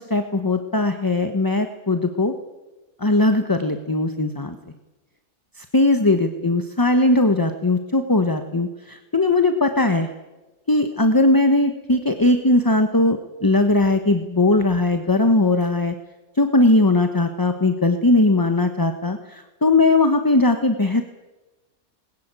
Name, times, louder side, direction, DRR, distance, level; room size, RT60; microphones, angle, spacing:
voice 1, 0.0-2.3 3.0-4.6 5.6-10.1 10.7-15.9 16.4-21.0, left 2 dB, 15° left, 7 dB, 0.9 m, -19 dB
20.5 x 20.0 x 9.0 m, 1.2 s
omnidirectional pair, 1.6 m